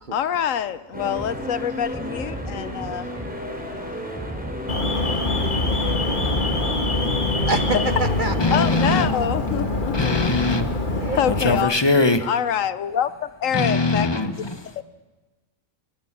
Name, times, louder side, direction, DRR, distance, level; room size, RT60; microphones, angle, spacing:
voice 1, 0.1-3.1 8.5-10.2 11.2-11.7 12.2-14.1 14.8-14.9, left 9 dB, 70° left, 1.2 m, -25 dB
sound 1, 0.9-9.1, equal, 5° right, 3.9 m, -32 dB
voice 2, 1.5-7.0, right 1 dB, 70° right, 5.9 m, -45 dB
Alarm, 4.7-11.6, left 2 dB, 35° left, 2.0 m, -24 dB
voice 3, 7.5-9.3 11.0-11.2 11.5-11.7, right 2 dB, 40° right, 1.0 m, -28 dB
voice 4, 8.4-10.7 11.4-12.3 13.5-14.7, left 3 dB, 20° left, 1.3 m, -22 dB
21.5 x 21.0 x 7.5 m
omnidirectional pair, 1.5 m